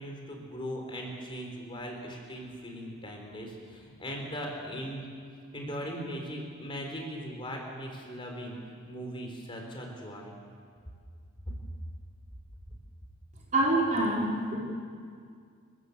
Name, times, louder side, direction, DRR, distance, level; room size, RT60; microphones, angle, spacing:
voice 1, 0.0-5.0 5.5-10.3 11.5-11.6, equal, 25° left, 1 dB, 3.9 m, -39 dB
voice 2, 13.5-14.6, right 1 dB, 35° right, -3 dB, 4.0 m, -26 dB
29.5 x 14.0 x 8.2 m, 2.1 s
head